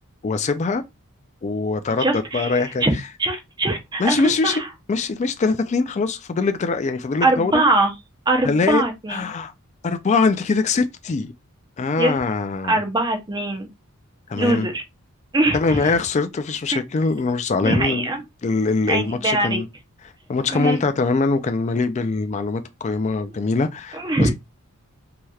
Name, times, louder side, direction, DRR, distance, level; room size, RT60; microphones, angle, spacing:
voice 1, 0.2-0.8 1.4-2.8 4.0-4.6 4.9-7.6 8.4-8.8 9.1-9.5 9.8-11.3 11.8-12.8 14.3-14.7 15.5-18.1 18.4-19.7 20.3-24.3, left 4 dB, 35° left, 0.3 m, -22 dB
voice 2, 2.0-2.9 3.2-4.7 7.2-7.9 8.3-9.2 12.0-12.1 12.7-13.7 14.4-14.8 15.3-15.9 16.7-16.8 17.6-18.2 18.9-19.6 20.5-20.8 23.9-24.3, right 2 dB, 20° right, 0.7 m, -22 dB
3.2 x 2.8 x 2.3 m
head